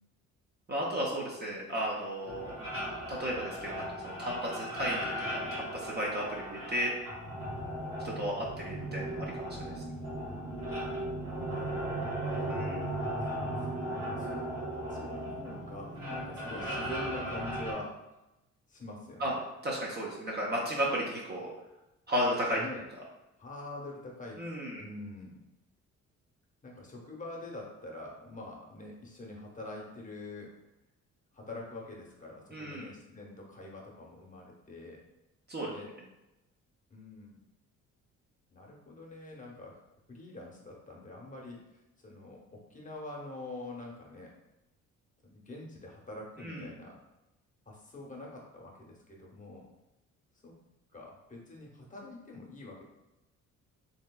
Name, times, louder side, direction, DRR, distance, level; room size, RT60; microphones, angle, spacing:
voice 1, 0.7-2.5 3.1-6.9 8.0-9.8 12.5-12.8 19.2-19.3 19.6-21.5 22.1-22.6 24.4-24.8 32.5-32.8 35.5-35.7 46.4-46.7, equal, 35° right, -4 dB, 0.6 m, -34 dB
sound 1, 2.2-17.7, right 1 dB, 90° right, 1.2 m, -37 dB
voice 2, 11.5-13.2 13.6-13.7 14.2-14.4 14.9-17.9 18.7-19.4 22.6-22.8 23.4-24.4 24.8-25.4 26.6-30.5 31.3-35.0 35.6-35.9 36.9-37.4 38.5-39.8 40.1-44.3 45.2-47.0 47.7-49.7 50.4-50.5 50.9-52.8, left 2 dB, 25° left, -2 dB, 0.8 m, -45 dB
3.0 x 2.7 x 2.2 m, 0.96 s
cardioid pair, 90°, 30 cm